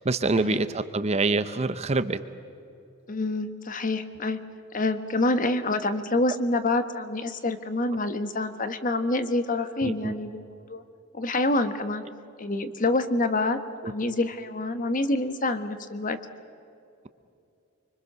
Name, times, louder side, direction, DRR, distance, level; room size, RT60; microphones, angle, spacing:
voice 1, 0.0-2.2 9.8-10.1, right 3 dB, 30° right, 11 dB, 0.6 m, -25 dB
voice 2, 3.1-4.4 4.7-10.8 11.1-12.0 12.4-13.6 13.8-16.2, left 2 dB, 40° left, 10 dB, 1.3 m, -27 dB
25.0 x 24.5 x 6.7 m, 2.7 s
head